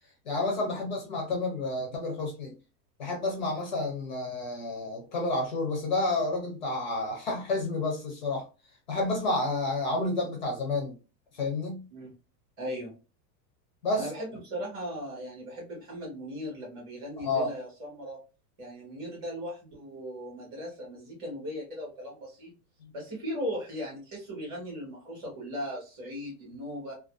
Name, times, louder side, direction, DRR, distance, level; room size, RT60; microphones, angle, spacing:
voice 1, 0.2-2.5 3.0-8.4 8.9-11.0 11.3-11.9 13.8-14.1 17.2-17.5 22.8-22.9, left 2 dB, 30° left, 0.4 m, -30 dB
voice 2, 12.6-12.9 13.9-18.2 18.6-22.5 22.9-26.9, equal, 15° right, 0.7 m, -38 dB
2.5 x 2.2 x 2.2 m
supercardioid pair, 175°, 50 cm